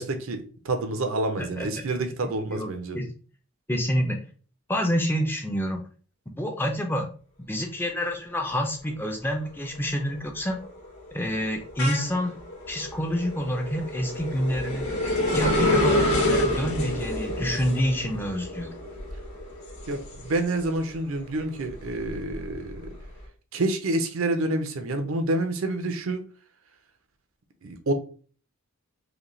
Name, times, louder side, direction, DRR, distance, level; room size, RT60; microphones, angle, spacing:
voice 1, 0.0-3.0 19.9-22.9 23.5-26.2 27.6-27.9, right 2 dB, 65° right, 0.6 m, -28 dB
voice 2, 1.4-1.9 2.2-3.1 3.7-4.2 4.7-5.8 6.4-7.1 7.5-10.6 11.1-12.4 12.7-14.9 15.3-18.7, equal, 10° left, 0.5 m, -28 dB
sound 1, 8.9-9.3 9.7-20.9 21.3-23.0, left 1 dB, 75° left, 1.6 m, -28 dB
4.9 x 2.3 x 3.1 m
head